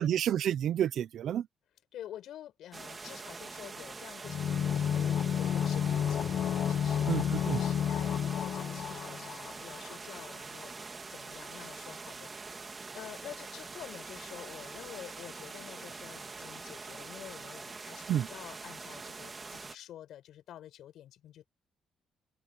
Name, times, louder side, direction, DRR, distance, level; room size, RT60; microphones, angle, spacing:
voice 1, 0.0-1.5 7.1-7.6 18.1-18.3, right 10 dB, 65° right, 0.8 m, -29 dB
voice 2, 1.9-7.1 7.4-21.5, left 11 dB, 75° left, 5.6 m, -49 dB
sound 1, 2.7-19.8, right 4 dB, 25° right, 2.6 m, -44 dB
sound 2, 4.2-9.9 10.2-10.3, left 8 dB, 50° left, 0.6 m, -31 dB
open air
cardioid pair, 130°, 0 cm